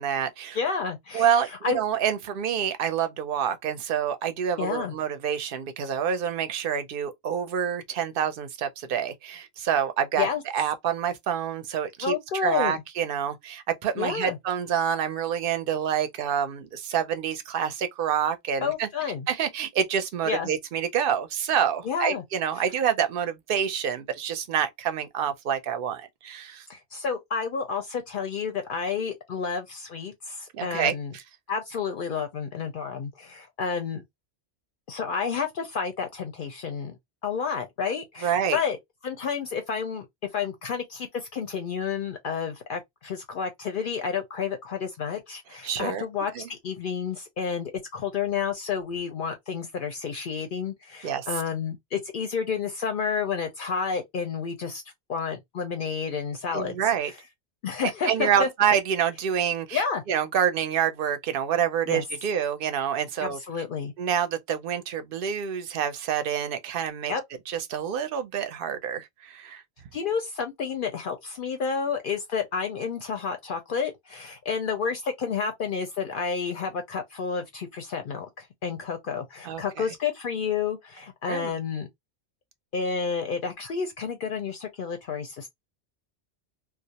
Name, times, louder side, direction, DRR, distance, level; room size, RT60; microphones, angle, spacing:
voice 1, 0.0-0.6 1.1-10.3 10.5-12.1 12.4-18.9 19.3-26.6 30.5-30.9 38.2-38.6 45.6-46.0 46.3-46.4 51.0-51.3 56.5-57.1 58.1-59.8 60.1-63.4 64.0-67.1 67.5-69.6 79.4-79.6 81.3-81.5, right 8 dB, 60° right, 0.7 m, -27 dB
voice 2, 0.5-1.8 4.6-4.9 10.2-10.4 12.0-12.7 14.0-14.4 18.6-19.3 20.3-20.5 21.8-22.2 22.6-22.7 26.7-31.1 31.5-34.0 34.9-37.0 37.2-38.8 39.0-40.1 40.3-54.8 55.1-56.8 57.1-57.2 57.6-58.5 59.7-60.0 61.9-62.0 63.2-63.9 67.1-67.2 69.9-81.9 82.7-85.5, left 6 dB, 60° left, 0.6 m, -30 dB
2.3 x 2.0 x 2.7 m
omnidirectional pair, 1.2 m